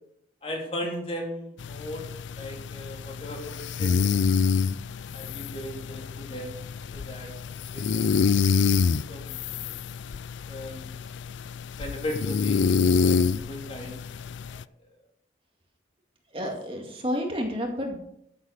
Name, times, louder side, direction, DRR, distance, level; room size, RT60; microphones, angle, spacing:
voice 1, 0.4-2.0 2.4-4.1 5.1-6.5 6.9-7.3 7.7-8.3 8.8-9.3 10.5-10.9 11.8-13.9 14.5-14.6, left 1 dB, 30° left, 0 dB, 3.6 m, -37 dB
sound 1, 1.6-14.6, left 5 dB, 75° left, 0.4 m, -27 dB
voice 2, 16.3-18.0, equal, 30° right, 2 dB, 2.2 m, -30 dB
14.0 x 8.0 x 6.6 m, 0.74 s
head